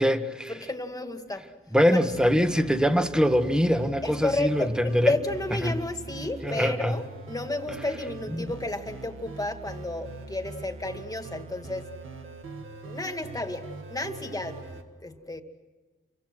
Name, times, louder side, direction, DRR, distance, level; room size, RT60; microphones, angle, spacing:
voice 1, 0.0-0.6 1.7-5.1 5.6-5.8 6.4-7.0 7.7-7.8 8.3-8.5, equal, 5° right, 1.5 m, -23 dB
voice 2, 0.6-1.4 1.9-2.0 4.0-11.9 12.8-15.4, left 2 dB, 20° left, 2.3 m, -32 dB
sound 1, 2.1-14.8, right 3 dB, 90° right, 1.9 m, -42 dB
29.0 x 24.5 x 6.2 m
wide cardioid pair, 95°, 20 cm